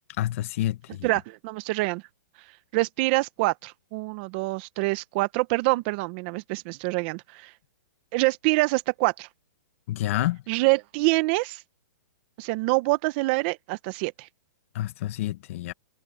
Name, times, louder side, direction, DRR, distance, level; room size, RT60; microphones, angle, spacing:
voice 1, 0.2-1.1 9.9-10.4 14.7-15.7, left 14 dB, 45° left, 1.0 m, -28 dB
voice 2, 1.0-2.0 2.7-7.5 8.1-9.3 10.5-11.6 12.4-14.3, right 23 dB, 35° right, 0.9 m, -26 dB
hypercardioid pair, 155°, 10 cm